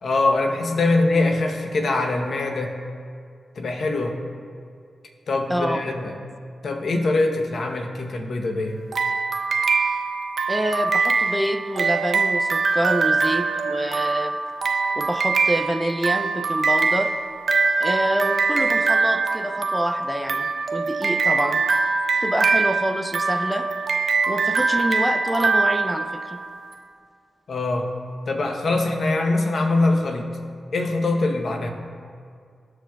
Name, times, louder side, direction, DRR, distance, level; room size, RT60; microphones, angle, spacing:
voice 1, 0.0-2.8 3.6-4.2 5.3-6.1 6.6-8.8 27.5-27.9 28.3-30.3 30.7-31.7, left 2 dB, 65° left, 3 dB, 0.8 m, -23 dB
voice 2, 5.5-5.8 10.5-14.4 15.0-17.1 17.8-21.6 22.2-23.7 24.3-26.4, equal, ahead, 6 dB, 0.5 m, -26 dB
sound 1, 8.9-26.6, right 4 dB, 70° right, 0.5 m, -23 dB
14.0 x 4.8 x 2.3 m, 2.2 s
supercardioid pair, 45°, 0 cm